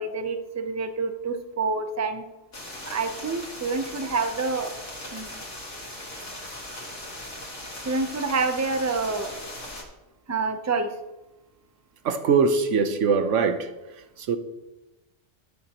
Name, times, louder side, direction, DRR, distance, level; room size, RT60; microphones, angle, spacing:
voice 1, 0.0-2.2 2.8-4.7 5.1-5.4 7.8-9.3 10.3-10.9, right 4 dB, 20° right, 7 dB, 0.6 m, -27 dB
sound 1, 2.5-9.8, left 1 dB, 85° left, 2.3 m, -39 dB
voice 2, 12.0-13.7 14.2-14.4, right 5 dB, 85° right, 8 dB, 1.2 m, -22 dB
12.5 x 9.9 x 3.0 m, 1.0 s
omnidirectional pair, 1.2 m